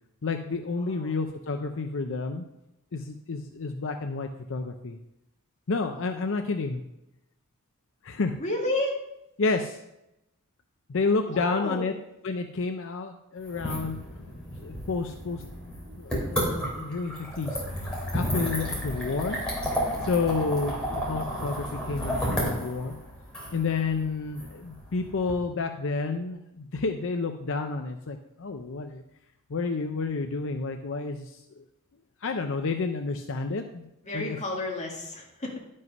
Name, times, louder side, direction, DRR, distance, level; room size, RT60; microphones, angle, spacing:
voice 1, 0.2-2.4 2.9-5.0 5.7-6.8 8.0-8.4 9.4-9.8 10.9-11.9 12.2-14.0 14.6-15.4 16.0-17.8 18.1-19.4 20.0-23.0 23.5-29.0 29.5-31.6 32.2-33.8 34.1-34.4, left 4 dB, 60° left, 5 dB, 0.6 m, -30 dB
voice 2, 0.8-1.1 8.4-9.0 11.3-11.9 34.0-35.6, left 1 dB, 35° left, -1 dB, 1.9 m, -31 dB
sound 1, 13.4-25.3, equal, 5° left, 3.1 m, -32 dB
11.0 x 5.4 x 5.4 m, 0.86 s
head